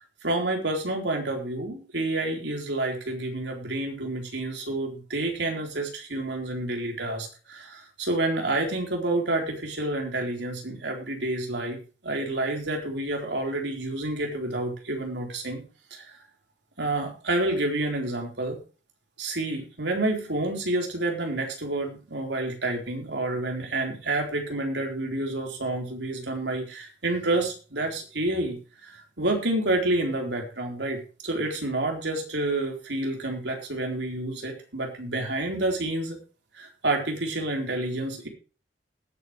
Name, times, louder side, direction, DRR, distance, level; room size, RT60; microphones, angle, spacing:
voice 1, 0.2-11.8 12.0-15.6 15.9-16.1 16.8-18.6 19.2-36.2 36.6-38.3, right 2 dB, 75° right, 2 dB, 4.0 m, -29 dB
20.0 x 9.2 x 3.1 m, 0.35 s
head